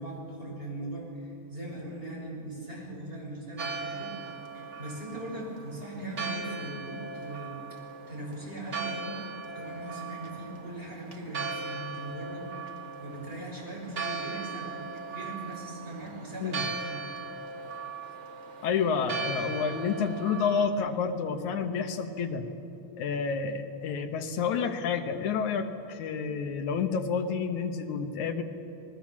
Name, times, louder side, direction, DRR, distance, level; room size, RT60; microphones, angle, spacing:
voice 1, 0.0-4.2 4.5-9.2 9.5-14.8 15.1-17.0, right 1 dB, 15° right, -3 dB, 6.8 m, -40 dB
Church bell, 3.6-20.7, right 4 dB, 40° right, 1.0 m, -38 dB
voice 2, 18.6-22.5 23.0-28.4, left 6 dB, 75° left, 5 dB, 2.7 m, -29 dB
29.5 x 20.0 x 7.4 m, 2.8 s
omnidirectional pair, 3.4 m